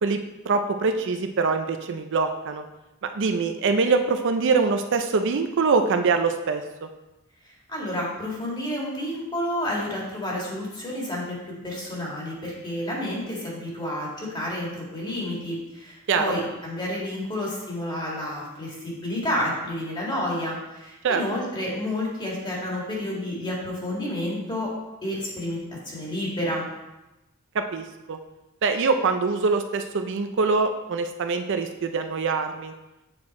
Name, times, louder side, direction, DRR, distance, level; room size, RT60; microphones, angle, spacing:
voice 1, 0.0-2.6 3.0-6.9 16.1-16.3 21.0-21.2 27.5-28.2 28.6-32.7, right 4 dB, 60° right, 7 dB, 0.5 m, -24 dB
voice 2, 7.7-24.7 25.0-26.7, left 1 dB, 20° left, -4 dB, 2.0 m, -30 dB
7.8 x 4.5 x 4.2 m, 1.0 s
head